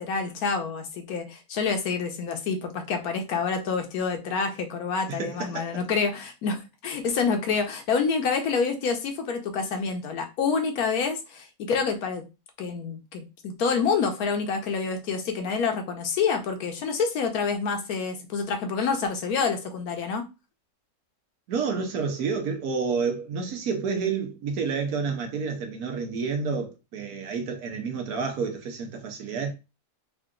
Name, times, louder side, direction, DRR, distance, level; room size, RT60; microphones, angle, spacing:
voice 1, 0.0-12.3 12.6-20.3, left 5 dB, 70° left, 1.1 m, -27 dB
voice 2, 5.1-5.8 21.5-29.5, right 5 dB, 65° right, 1.2 m, -29 dB
3.8 x 2.5 x 3.6 m
omnidirectional pair, 1.8 m